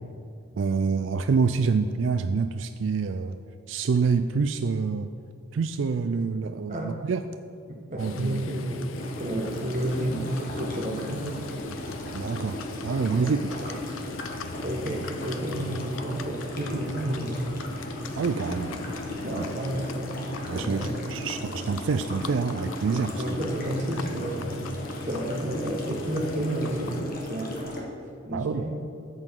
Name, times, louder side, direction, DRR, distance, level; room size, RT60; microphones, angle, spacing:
voice 1, 0.6-3.4 3.7-5.1 5.5-7.2 8.0-8.4 12.1-12.6 12.8-13.5 18.2-18.8 19.3-19.5 20.5-23.4 28.3-28.6, right 5 dB, 70° right, 9 dB, 0.4 m, -27 dB
voice 2, 7.7-11.4 13.1-14.0 14.6-17.5 19.2-20.2 20.5-21.0 23.2-27.6 28.2-28.8, right 1 dB, 40° right, -1 dB, 1.4 m, -31 dB
Livestock farm animals working animals, 8.0-27.0, left 4 dB, 85° left, 0.5 m, -40 dB
sound 1, 8.9-27.8, left 1 dB, 45° left, 1.5 m, -37 dB
Bass guitar, 11.1-19.1, equal, 5° right, 2.4 m, -51 dB
13.5 x 8.1 x 3.8 m, 2.4 s
head